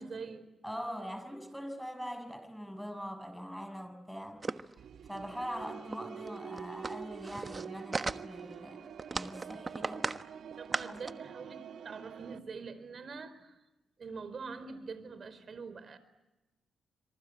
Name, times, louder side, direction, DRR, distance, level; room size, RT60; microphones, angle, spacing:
voice 1, 0.0-0.4 10.6-13.6 14.0-16.0, right 4 dB, 55° right, 13 dB, 4.4 m, -44 dB
voice 2, 0.6-4.7 5.1-8.9 9.1-10.1 10.9-11.0, equal, ahead, 8 dB, 6.4 m, -42 dB
sound 1, 4.4-4.7 5.2-5.3 5.5-5.6 5.9-6.0 6.3-8.5 9.0-10.2 10.5-11.1, right 3 dB, 35° right, 1.3 m, -37 dB
sound 2, 4.8-12.4, right 8 dB, 70° right, 1.4 m, -47 dB
26.5 x 24.0 x 8.9 m, 1.0 s
supercardioid pair, 50°, 0 cm